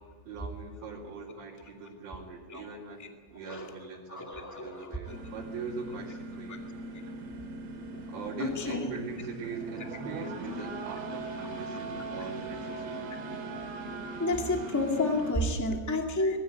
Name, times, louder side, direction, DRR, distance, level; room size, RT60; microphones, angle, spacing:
voice 1, 0.2-6.7 8.1-13.2, right 4 dB, 60° right, -7 dB, 5.0 m, -42 dB
voice 2, 3.4-3.8 4.1-5.2 8.4-8.9 14.2-16.4, left 2 dB, 10° left, 2 dB, 1.0 m, -30 dB
sound 1, 5.1-15.3, right 2 dB, 85° right, 5.0 m, -39 dB
21.0 x 15.0 x 9.5 m, 1.4 s
omnidirectional pair, 4.8 m